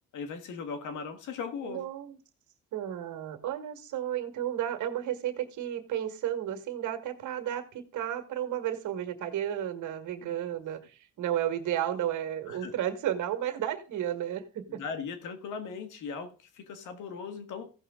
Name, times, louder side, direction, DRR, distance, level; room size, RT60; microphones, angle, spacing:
voice 1, 0.1-1.8 10.2-10.3 12.5-12.7 14.7-17.7, left 5 dB, 80° left, 1.7 m, -38 dB
voice 2, 1.6-2.2 2.7-14.8, right 11 dB, 80° right, 1.6 m, -33 dB
15.0 x 6.2 x 3.7 m
cardioid pair, 90°, 30 cm